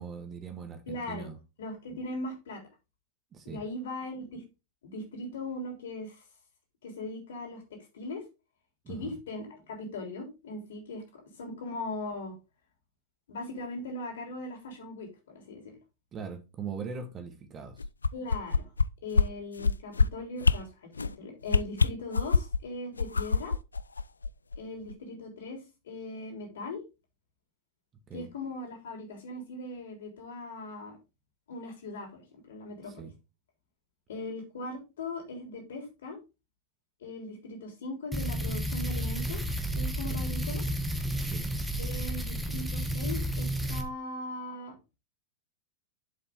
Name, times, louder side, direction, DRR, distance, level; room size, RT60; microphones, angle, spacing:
voice 1, 0.0-1.4 3.3-3.6 8.8-9.1 16.1-17.8 28.1-28.3 32.9-33.1 40.1-40.2 41.1-41.5, right 6 dB, 25° right, 7 dB, 1.7 m, -40 dB
voice 2, 0.9-1.3 1.6-2.6 3.4-4.4 4.8-6.2 6.8-7.6 7.9-8.2 8.9-12.3 13.3-15.7 18.1-18.7 19.0-23.5 24.6-26.8 28.1-31.0 31.5-33.0 34.1-36.2 37.0-39.4 39.7-40.6 41.8-44.7, left 2 dB, 60° left, 3 dB, 3.4 m, -39 dB
sound 1, 17.8-18.8 19.1-19.3 19.6-20.1 20.4-20.6 21.0-21.1 21.5-22.6 23.0-24.6 24.9-25.0, left 4 dB, 75° left, 0.4 m, -24 dB
sound 2, 38.1-43.8, right 1 dB, ahead, 1.4 m, -31 dB
7.7 x 7.4 x 3.6 m, 0.28 s
figure-of-eight pair, 90°, 0 cm